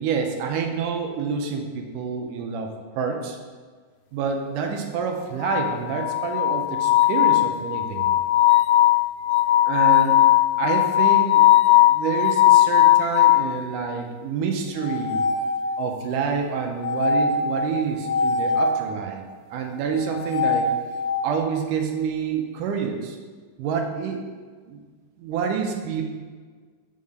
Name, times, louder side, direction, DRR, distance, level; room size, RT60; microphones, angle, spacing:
voice 1, 0.0-3.4 4.1-8.1 9.7-10.2 10.6-11.5 11.9-15.2 15.8-19.2 19.5-20.7 21.2-23.2 23.6-24.2 24.7-24.8 25.2-26.0, right 6 dB, 85° right, 3 dB, 2.2 m, -27 dB
sound 1, 5.4-13.5 14.8-16.1 16.8-18.8 20.0-21.3, left 11 dB, 85° left, 2.3 m, -19 dB
5.5 x 4.7 x 6.4 m, 1.5 s
omnidirectional pair, 3.8 m